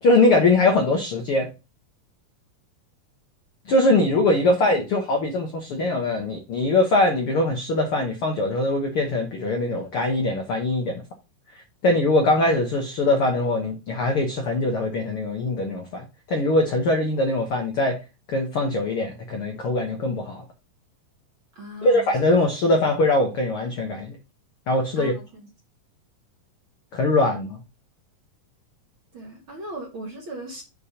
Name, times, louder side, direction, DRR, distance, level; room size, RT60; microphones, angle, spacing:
voice 1, 0.0-1.5 3.7-11.0 11.8-18.0 18.3-20.4 21.8-24.2 24.7-25.1 26.9-27.6, left 2 dB, 70° left, 1.3 m, -22 dB
voice 2, 21.6-22.1 25.0-25.5 29.1-30.6, right 1 dB, 50° right, 1.7 m, -38 dB
7.4 x 3.4 x 5.5 m
omnidirectional pair, 3.9 m